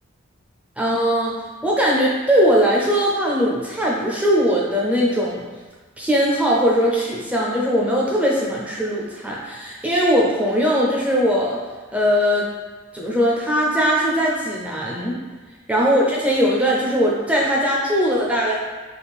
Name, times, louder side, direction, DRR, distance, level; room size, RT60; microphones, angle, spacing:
voice 1, 0.8-1.4 1.6-5.4 6.0-11.6 11.9-12.5 12.9-15.2 15.7-18.5, equal, 5° right, -4 dB, 0.5 m, -20 dB
4.1 x 2.5 x 3.5 m, 1.4 s
head